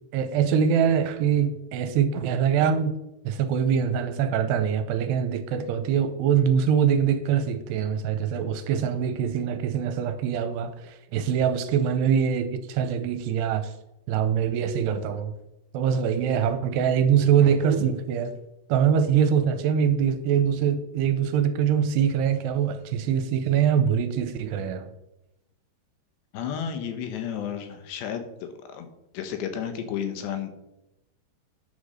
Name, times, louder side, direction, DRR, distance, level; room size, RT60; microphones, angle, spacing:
voice 1, 0.1-2.9 3.3-13.7 14.1-15.3 15.7-18.3 18.7-24.9, right 8 dB, 80° right, 2.7 m, -23 dB
voice 2, 26.3-28.9 29.1-30.5, left 8 dB, 75° left, 3.3 m, -32 dB
9.8 x 6.9 x 6.4 m
omnidirectional pair, 5.1 m